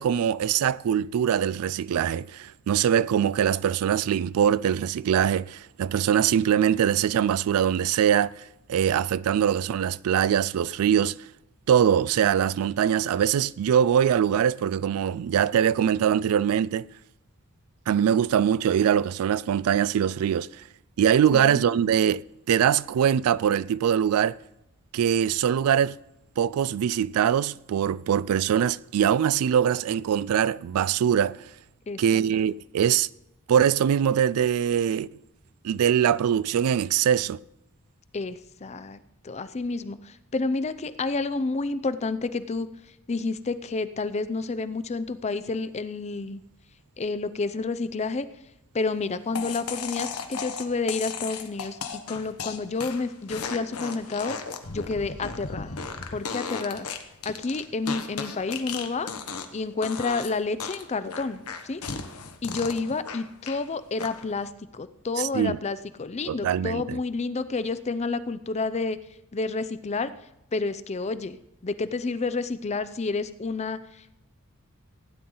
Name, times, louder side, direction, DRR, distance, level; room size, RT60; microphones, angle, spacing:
voice 1, 0.0-11.2 11.7-16.9 17.9-20.5 21.0-22.2 22.5-24.4 24.9-26.0 26.4-31.4 32.0-33.1 33.5-35.1 35.6-37.4 65.2-65.6 66.3-67.0, right 9 dB, 80° right, 0.3 m, -23 dB
voice 2, 31.9-32.2 38.1-42.7 43.1-46.4 47.0-48.3 48.7-54.4 54.7-55.8 56.1-56.9 57.3-59.1 59.5-61.8 62.4-69.0 69.3-70.1 70.5-71.4 71.6-74.1, left 3 dB, 30° left, 0.5 m, -30 dB
sound 1, 49.4-59.6 59.8-60.3 60.6-63.6 64.0-64.4, left 5 dB, 85° left, 1.1 m, -35 dB
16.0 x 9.5 x 3.9 m
head